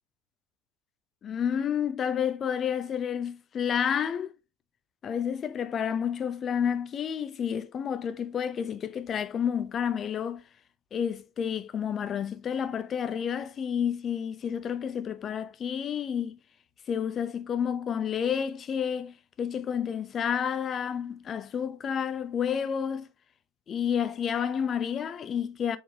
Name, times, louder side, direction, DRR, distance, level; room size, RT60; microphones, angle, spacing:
voice 1, 1.2-4.3 5.0-10.4 10.9-16.4 16.9-23.1 23.7-25.8, left 8 dB, 35° left, 0.5 m, -30 dB
4.8 x 3.5 x 2.7 m
figure-of-eight pair, 75°, 0 cm